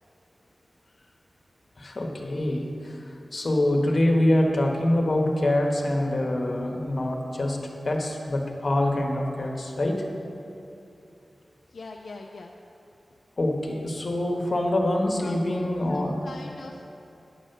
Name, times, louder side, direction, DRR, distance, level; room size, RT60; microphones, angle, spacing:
voice 1, 1.8-3.0 3.3-7.6 7.8-10.0 13.4-16.2, left 1 dB, 50° left, 2 dB, 1.3 m, -25 dB
voice 2, 11.7-12.5 15.2-15.6 15.9-16.8, left 3 dB, 80° left, 1 dB, 0.5 m, -42 dB
9.8 x 6.4 x 6.6 m, 2.8 s
wide cardioid pair, 80°, 0 cm